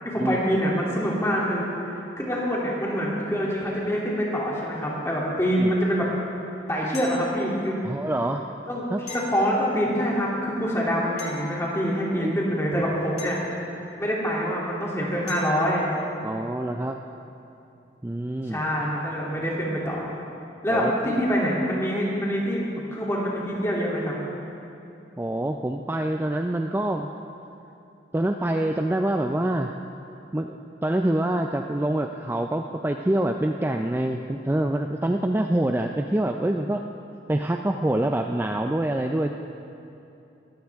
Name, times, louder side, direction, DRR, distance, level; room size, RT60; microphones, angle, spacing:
voice 1, 0.0-1.6 2.2-6.1 6.7-7.8 8.7-13.4 14.0-15.8 18.5-20.0 20.6-22.6 22.9-24.2, equal, 15° left, -5 dB, 2.7 m, -25 dB
sound 1, 6.9-7.7 9.1-10.1 11.2-12.2 13.2-14.2 15.3-15.9 18.6-18.7, left 3 dB, 40° left, 2.0 m, -42 dB
voice 2, 7.8-8.4 8.9-9.0 12.2-12.3 16.2-17.0 18.0-18.6 20.7-20.9 25.2-27.1 28.1-29.7 30.3-30.5 30.8-36.8 37.3-39.4, right 1 dB, 10° right, 4 dB, 0.3 m, -25 dB
22.0 x 14.5 x 3.5 m, 2.8 s
head